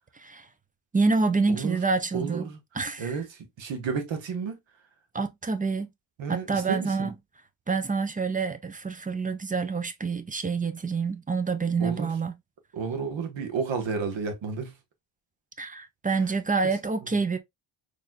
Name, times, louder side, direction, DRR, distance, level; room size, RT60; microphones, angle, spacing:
voice 1, 0.9-2.5 2.7-3.2 5.1-5.9 6.3-7.1 7.7-12.3 15.6-17.4, right 4 dB, 20° right, 0.3 m, -27 dB
voice 2, 2.1-2.6 3.0-4.6 6.2-7.1 11.8-12.1 12.7-14.8, right 5 dB, 65° right, 1.3 m, -31 dB
4.1 x 3.2 x 2.4 m
wide cardioid pair, 130°, 48 cm